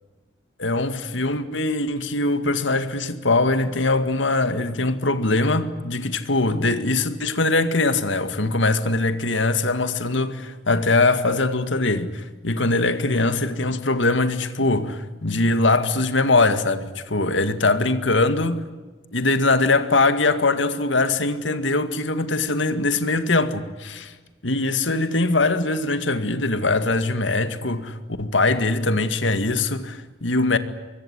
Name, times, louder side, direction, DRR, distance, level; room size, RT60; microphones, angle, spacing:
voice 1, 0.6-18.7 19.1-24.1 24.4-30.6, left 2 dB, 85° left, 2.2 m, -22 dB
25.0 x 23.0 x 9.9 m
head